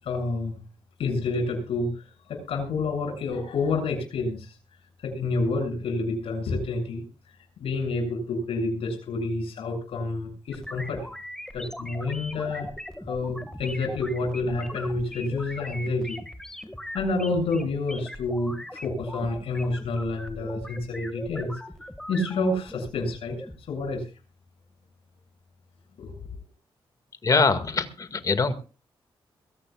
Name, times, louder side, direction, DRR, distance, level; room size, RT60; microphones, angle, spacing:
voice 1, 0.0-0.6 1.0-4.5 5.0-7.3 7.6-11.1 11.5-12.7 13.1-16.2 16.9-21.5 22.1-24.1 26.0-26.1, left 3 dB, 85° left, 1 dB, 7.5 m, -29 dB
sound 1, 10.5-23.6, left 1 dB, 5° left, 2.0 m, -40 dB
voice 2, 27.2-28.5, left 4 dB, 40° left, 9 dB, 2.1 m, -23 dB
22.5 x 16.5 x 2.5 m, 0.34 s
cardioid pair, 110°, 10 cm